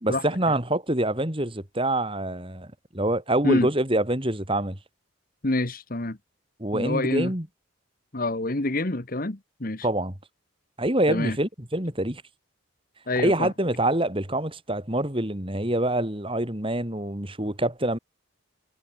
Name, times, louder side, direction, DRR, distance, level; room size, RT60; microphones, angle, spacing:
voice 1, 0.0-4.8 6.6-7.5 9.8-10.1 10.8-12.2 13.2-18.0, right 1 dB, 25° right, 3.2 m, -26 dB
voice 2, 5.4-6.2 6.7-7.3 8.1-9.9 11.1-11.4 13.1-13.5, left 2 dB, 40° left, 1.4 m, -26 dB
head